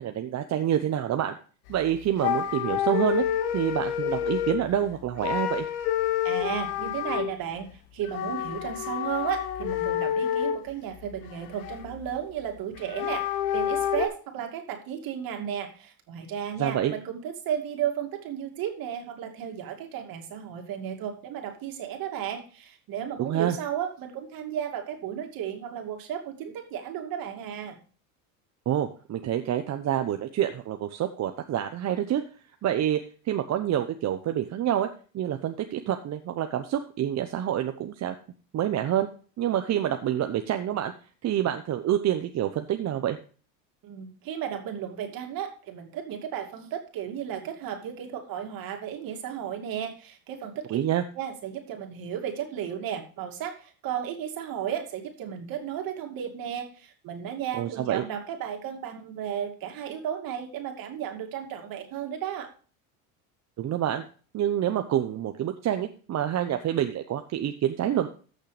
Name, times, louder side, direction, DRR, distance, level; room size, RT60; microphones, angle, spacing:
voice 1, 0.0-1.4 1.7-3.2 3.5-5.6 16.6-16.9 23.2-23.6 28.7-32.2 32.6-33.0 33.2-34.9 35.1-38.1 38.5-39.1 39.4-40.9 41.2-43.2 50.7-51.0 57.5-58.0 63.6-64.0 64.3-68.1, right 11 dB, 40° right, 7 dB, 0.9 m, -27 dB
sound 1, 1.7-1.8 2.2-4.7 5.2-7.3 8.1-10.6 11.1-12.0 12.8-14.1, left 10 dB, 90° left, 1.2 m, -28 dB
voice 2, 6.2-7.7 7.9-13.3 13.5-27.8 43.8-50.8 51.1-62.5, right 9 dB, 55° right, 4 dB, 2.6 m, -34 dB
14.0 x 6.5 x 3.3 m, 0.40 s
supercardioid pair, 100°, 40 cm